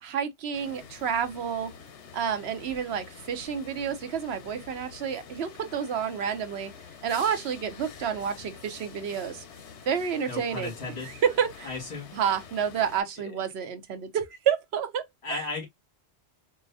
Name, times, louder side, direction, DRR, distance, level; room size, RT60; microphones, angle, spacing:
voice 1, 0.0-1.7 2.1-6.7 7.0-9.4 9.9-10.7 11.0-11.7 12.1-15.5, right 7 dB, 70° right, 0.9 m, -29 dB
sound 1, 0.5-13.0, left 6 dB, 85° left, 1.0 m, -47 dB
voice 2, 10.2-11.2 11.6-12.1 15.2-15.6, left 3 dB, 70° left, 2.0 m, -35 dB
4.6 x 2.1 x 2.6 m
omnidirectional pair, 1.1 m